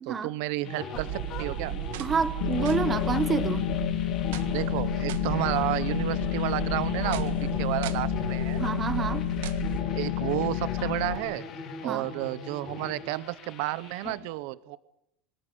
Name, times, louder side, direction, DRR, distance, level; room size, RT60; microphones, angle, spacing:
voice 1, 0.1-1.7 4.5-7.3 7.6-8.6 9.9-11.4 11.8-14.8, right 18 dB, 55° right, 17 dB, 0.8 m, -31 dB
sound 1, 0.6-14.2, left 5 dB, 30° left, 3.4 m, -41 dB
sound 2, 0.9-9.8, right 13 dB, 75° right, 1.5 m, -35 dB
voice 2, 2.0-3.7 8.6-9.3 11.8-12.1, right 5 dB, 15° right, 13 dB, 1.4 m, -28 dB
sound 3, 2.4-11.2, left 16 dB, 60° left, 1.1 m, -29 dB
25.0 x 13.5 x 9.6 m, 0.78 s
supercardioid pair, 175°, 0 cm